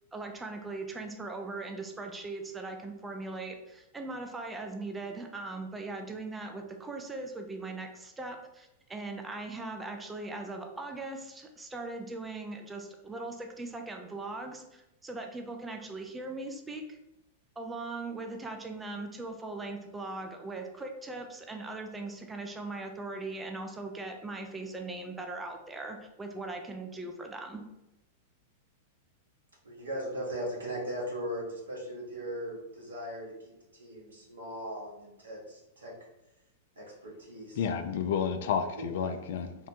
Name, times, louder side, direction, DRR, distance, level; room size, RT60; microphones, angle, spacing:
voice 1, 0.1-17.0 17.6-27.6, right 2 dB, 15° right, 4 dB, 0.5 m, -40 dB
voice 2, 29.6-35.9 36.8-37.7 38.8-38.9, equal, 80° right, -3 dB, 1.2 m, -38 dB
voice 3, 37.6-39.7, left 7 dB, 60° left, 8 dB, 0.4 m, -31 dB
3.7 x 2.2 x 4.3 m, 0.93 s
figure-of-eight pair, 100°, 0 cm